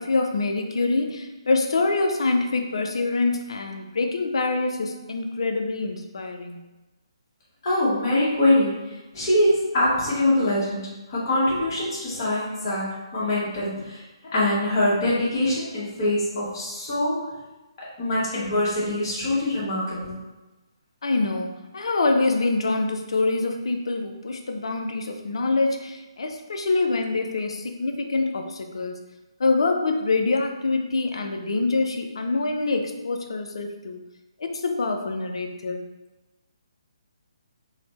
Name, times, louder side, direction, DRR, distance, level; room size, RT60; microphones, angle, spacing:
voice 1, 0.0-6.6 21.0-29.0 29.4-34.0 34.4-35.9, left 3 dB, 70° left, 5 dB, 0.4 m, -25 dB
voice 2, 7.6-8.8 9.1-14.0 14.3-17.3 17.8-20.2, left 1 dB, 40° left, -7 dB, 1.0 m, -23 dB
3.1 x 2.0 x 3.0 m, 1.1 s
figure-of-eight pair, 145°, 3 cm